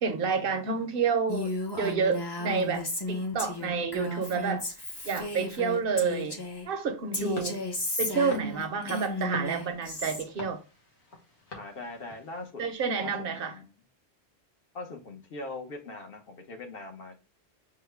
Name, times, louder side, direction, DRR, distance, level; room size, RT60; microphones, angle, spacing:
voice 1, 0.0-4.7 5.0-7.6 8.0-10.6 12.6-13.5, right 5 dB, 60° right, 0.8 m, -29 dB
Female speech woman speaking, 1.3-6.7 7.1-10.2, left 2 dB, 25° left, 0.6 m, -34 dB
sound 1, 7.3-12.5, left 3 dB, 75° left, 1.4 m, -46 dB
voice 2, 11.5-12.6 13.0-13.1 13.4-13.7 14.7-17.2, left 2 dB, 60° left, 1.0 m, -41 dB
5.6 x 2.2 x 3.3 m
omnidirectional pair, 1.2 m